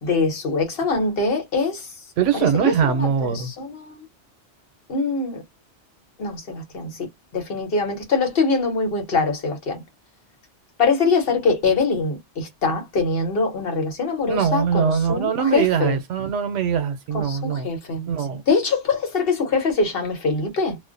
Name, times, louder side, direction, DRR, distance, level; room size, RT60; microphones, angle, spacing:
voice 1, 0.0-2.0 2.3-4.0 4.9-5.4 6.2-7.1 7.3-9.8 10.8-16.0 17.1-20.8, left 4 dB, 55° left, 1.1 m, -23 dB
voice 2, 2.2-3.5 14.3-17.7 18.1-18.4, right 7 dB, 90° right, 1.0 m, -22 dB
2.4 x 2.0 x 2.5 m
omnidirectional pair, 1.2 m